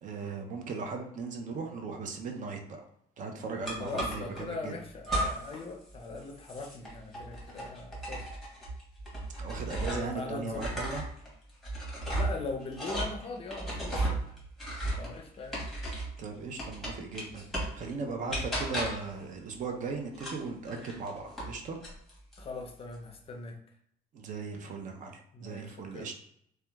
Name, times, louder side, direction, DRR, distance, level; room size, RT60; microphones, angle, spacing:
voice 1, 0.0-2.8 3.2-4.7 9.4-11.0 16.2-21.8 24.1-26.1, right 4 dB, 50° right, 3 dB, 0.5 m, -38 dB
sound 1, 3.7-4.4 5.0-5.6 5.9-10.2 10.5-16.2 16.6-17.8 18.3-19.1 20.1-21.5 21.8-22.4, right 1 dB, ahead, 1.1 m, -35 dB
voice 2, 3.8-8.3 9.7-10.7 12.1-14.3 15.0-15.6 22.4-23.6 25.3-26.1, left 3 dB, 35° left, 3 dB, 0.5 m, -40 dB
2.8 x 2.2 x 2.2 m, 0.69 s
cardioid pair, 110°, 17 cm